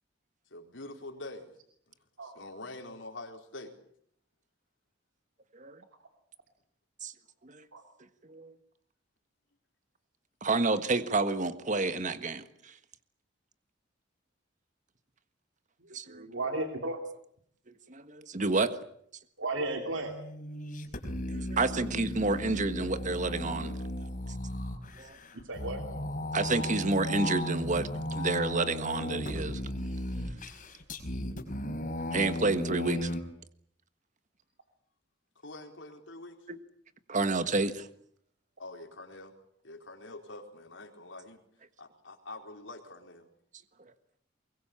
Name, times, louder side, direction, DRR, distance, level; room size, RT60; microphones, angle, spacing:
voice 1, 0.5-1.5 2.2-3.7 35.4-36.4 38.6-39.3 39.6-41.4 41.8-43.3, left 2 dB, 75° left, 3 dB, 4.5 m, -45 dB
voice 2, 10.4-12.4 15.9-16.2 17.9-18.8 21.3-23.8 25.0-25.2 26.3-29.6 32.1-33.1 36.5-36.6 37.1-37.9, right 3 dB, 40° right, 11 dB, 1.5 m, -29 dB
voice 3, 16.1-17.0 19.4-20.1 25.4-25.8, right 2 dB, 90° right, 4 dB, 2.9 m, -34 dB
sound 1, 19.9-33.2, left 1 dB, 45° left, 5.0 m, -36 dB
23.5 x 22.5 x 8.7 m, 0.67 s
head